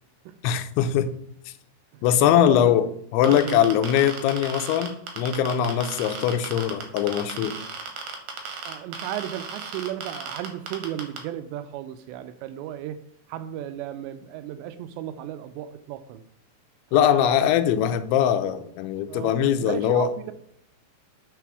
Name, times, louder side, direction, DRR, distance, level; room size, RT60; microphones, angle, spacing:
voice 1, 0.4-1.1 2.0-2.9 3.1-7.7 16.9-20.1, left 10 dB, 90° left, 3.0 m, -21 dB
voice 2, 1.9-2.7 3.2-3.7 8.6-13.0 13.3-16.2 16.9-17.6 19.1-20.3, right 11 dB, 85° right, 2.7 m, -34 dB
sound 1, 3.2-11.2, right 6 dB, 65° right, 2.2 m, -35 dB
9.3 x 4.1 x 4.7 m
omnidirectional pair, 5.2 m